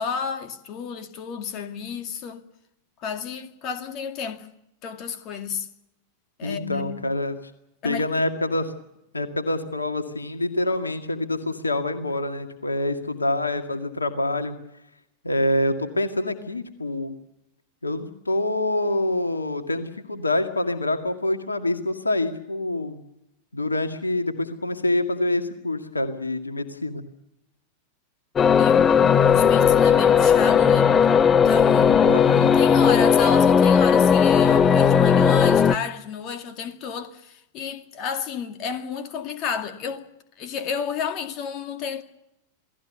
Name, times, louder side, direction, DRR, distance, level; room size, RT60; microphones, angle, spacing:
voice 1, 0.0-2.4 3.0-4.5 4.8-5.7 6.4-7.0 7.8-8.1 28.6-30.9 31.4-42.0, left 6 dB, 40° left, 2.1 m, -31 dB
voice 2, 6.4-7.4 7.8-8.7 9.1-14.6 15.2-17.1 17.8-23.0 23.5-27.0 32.0-32.5, left 1 dB, 80° left, 2.1 m, -26 dB
sound 1, 28.4-35.7, left 7 dB, 25° left, 1.0 m, -17 dB
28.5 x 18.0 x 6.9 m
figure-of-eight pair, 90°, 0 cm